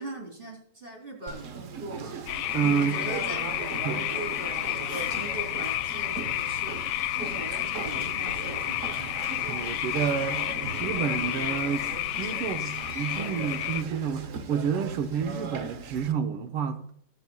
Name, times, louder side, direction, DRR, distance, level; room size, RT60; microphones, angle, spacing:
voice 1, 0.0-9.2, right 2 dB, 25° right, 3.2 m, -41 dB
Conversation, 1.3-16.1, right 5 dB, 55° right, 0.9 m, -39 dB
sound 1, 2.3-13.8, left 14 dB, 85° left, 1.5 m, -31 dB
voice 2, 2.5-3.0 3.9-4.0 9.5-10.5 10.8-16.9, right 7 dB, 80° right, 1.9 m, -29 dB
20.5 x 7.8 x 2.3 m
omnidirectional pair, 2.4 m